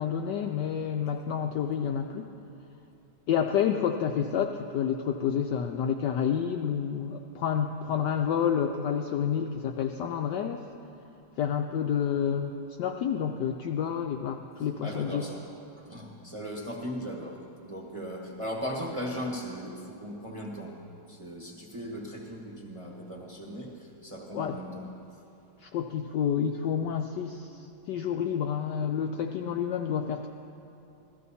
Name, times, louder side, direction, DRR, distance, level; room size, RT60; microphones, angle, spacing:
voice 1, 0.0-2.3 3.3-10.7 11.4-15.3 24.3-24.6 25.6-30.3, left 8 dB, 75° left, 4 dB, 1.0 m, -29 dB
voice 2, 14.6-15.4 15.9-20.7 21.1-25.0, equal, 20° right, -1 dB, 1.1 m, -38 dB
15.5 x 13.5 x 4.2 m, 2.8 s
omnidirectional pair, 2.3 m